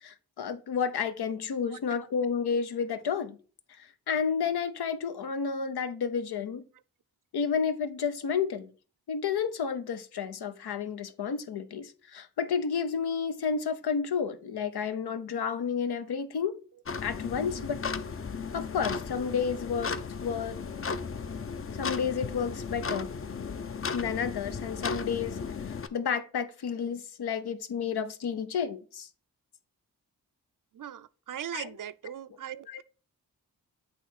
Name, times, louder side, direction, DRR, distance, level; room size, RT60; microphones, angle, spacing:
voice 1, 0.0-3.4 4.1-6.6 7.3-8.7 9.1-16.5 17.0-17.9 18.5-19.9 20.2-20.6 21.8-23.1 23.9-25.4 25.7-29.1 31.5-31.7 32.7-32.8, left 6 dB, 80° left, 0.7 m, -31 dB
sound 1, 16.9-25.9, left 5 dB, 35° left, 0.5 m, -35 dB
voice 2, 30.7-32.8, right 9 dB, 55° right, 0.5 m, -39 dB
8.0 x 3.0 x 4.1 m
cardioid pair, 50°, 38 cm